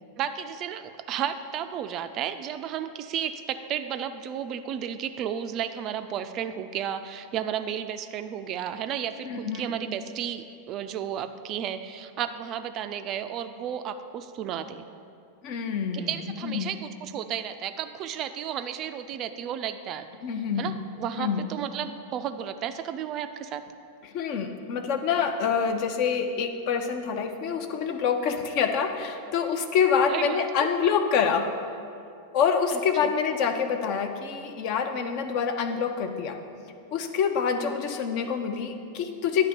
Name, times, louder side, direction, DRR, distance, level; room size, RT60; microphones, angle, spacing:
voice 1, 0.2-14.8 15.9-20.1 20.6-23.6 30.1-30.5 32.7-33.1 37.6-37.7, right 9 dB, 35° right, 9 dB, 0.4 m, -33 dB
voice 2, 9.3-9.7 15.4-16.1 16.4-16.7 20.2-20.7 21.2-21.4 24.0-31.5 32.3-36.4 36.9-39.5, left 6 dB, 45° left, 7 dB, 0.6 m, -26 dB
10.0 x 3.4 x 6.7 m, 2.5 s
figure-of-eight pair, 90°, 0 cm